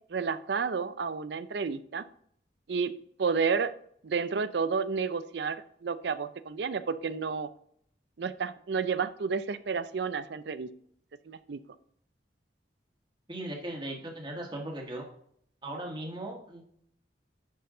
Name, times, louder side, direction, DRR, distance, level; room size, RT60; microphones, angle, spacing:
voice 1, 0.1-2.0 2.7-2.9 3.2-3.7 4.0-7.5 8.2-10.7 11.3-11.6, right 5 dB, 65° right, 14 dB, 0.5 m, -31 dB
voice 2, 13.3-15.1 15.6-16.6, right 1 dB, 25° right, 0 dB, 1.5 m, -38 dB
10.5 x 4.6 x 3.8 m, 0.68 s
head